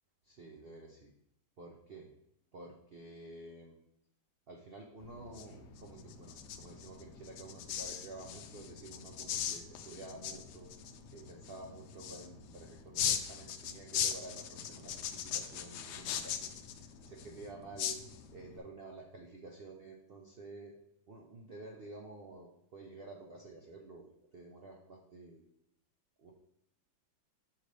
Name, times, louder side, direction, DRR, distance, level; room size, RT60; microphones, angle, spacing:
voice 1, 0.2-1.1 1.6-2.1 2.5-3.7 4.5-10.7 11.1-16.5 16.8-18.0 18.3-20.7 21.1-25.4 26.2-26.3, right 2 dB, 80° right, 0 dB, 0.5 m, -50 dB
sound 1, 5.0-18.6, left 9 dB, 70° left, 1.0 m, -40 dB
6.9 x 3.3 x 5.1 m, 0.78 s
omnidirectional pair, 2.1 m